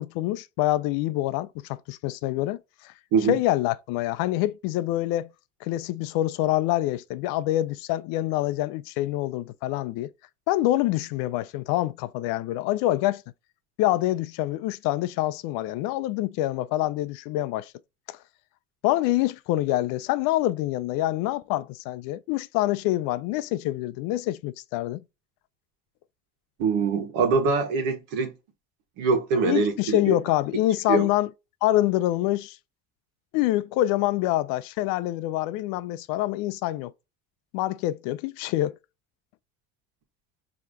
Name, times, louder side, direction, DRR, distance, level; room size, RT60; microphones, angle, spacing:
voice 1, 0.0-2.9 3.3-5.3 5.6-10.1 10.5-13.2 13.8-17.7 18.1-18.2 18.8-25.0 29.4-31.3 31.6-32.6 33.3-36.9 37.5-38.8, left 15 dB, 65° left, 0.5 m, -26 dB
voice 2, 26.6-28.3 29.0-30.1 30.9-31.1, right 4 dB, 70° right, 1.4 m, -23 dB
4.8 x 3.0 x 2.7 m
hypercardioid pair, 75°, 36 cm